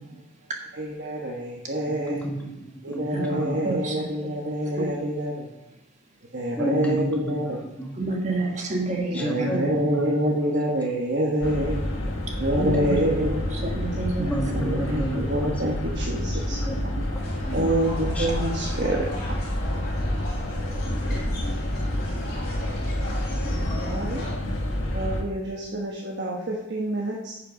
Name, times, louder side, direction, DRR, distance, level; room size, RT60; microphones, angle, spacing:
voice 1, 0.8-2.2 2.8-5.4 6.3-7.6 9.1-11.8 12.4-13.4 14.5-16.7 17.5-19.1 23.4-24.2 24.9-27.3, right 1 dB, 55° right, -2 dB, 1.2 m, -27 dB
voice 2, 2.0-3.7 6.6-7.9 9.1-10.2 12.9-13.0 14.2-15.6 15.9-16.0 16.5-18.3, right 1 dB, 5° left, -1 dB, 1.5 m, -31 dB
voice 3, 3.1-4.9 7.9-9.7 12.6-15.1 17.6-17.7, right 2 dB, 35° right, 1 dB, 1.6 m, -30 dB
sound 1, 11.4-25.2, left 1 dB, 75° left, 1.7 m, -28 dB
sound 2, 17.1-24.3, left 1 dB, 45° left, 3.2 m, -38 dB
10.5 x 6.8 x 5.3 m, 0.96 s
head